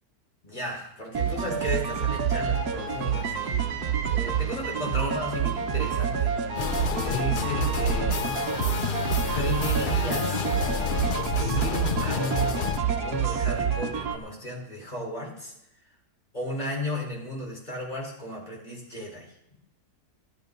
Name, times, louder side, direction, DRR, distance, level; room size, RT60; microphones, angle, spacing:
voice 1, 0.4-6.3 7.0-8.3 9.3-10.4 11.2-15.5 16.3-19.6, left 1 dB, 25° left, -3 dB, 4.5 m, -35 dB
sound 1, 1.1-14.2, right 7 dB, 70° right, 1.6 m, -27 dB
sound 2, 6.6-12.8, left 6 dB, 55° left, 0.5 m, -30 dB
13.0 x 13.0 x 5.3 m, 0.83 s
omnidirectional pair, 1.7 m